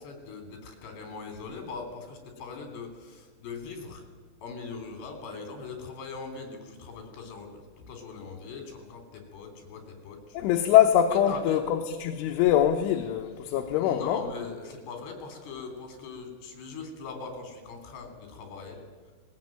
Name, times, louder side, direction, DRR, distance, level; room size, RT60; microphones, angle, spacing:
voice 1, 0.0-4.0 4.4-7.6 7.9-10.4 11.3-11.7 13.8-18.8, left 4 dB, 60° left, 5.4 m, -40 dB
voice 2, 10.3-14.2, left 10 dB, 80° left, 3.4 m, -23 dB
19.5 x 18.5 x 9.1 m
omnidirectional pair, 5.5 m